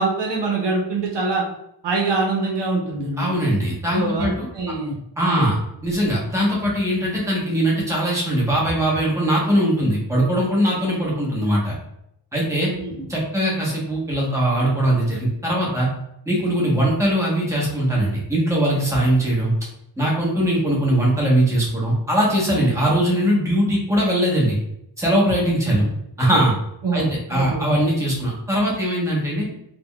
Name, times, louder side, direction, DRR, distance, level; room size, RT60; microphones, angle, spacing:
voice 1, 0.0-1.4 1.8-3.5 3.9-5.0 5.2-5.4 12.7-13.1 25.7-25.9 26.8-27.7, right 3 dB, 70° right, -1 dB, 0.7 m, -24 dB
voice 2, 3.2-4.5 5.2-5.6 5.8-11.7 12.3-12.7 13.1-15.9 16.3-19.5 20.0-24.6 25.0-25.9 26.2-26.5 26.9-29.5, right 1 dB, 5° right, -5 dB, 0.9 m, -20 dB
3.5 x 2.1 x 2.2 m, 0.78 s
wide cardioid pair, 115°, 45 cm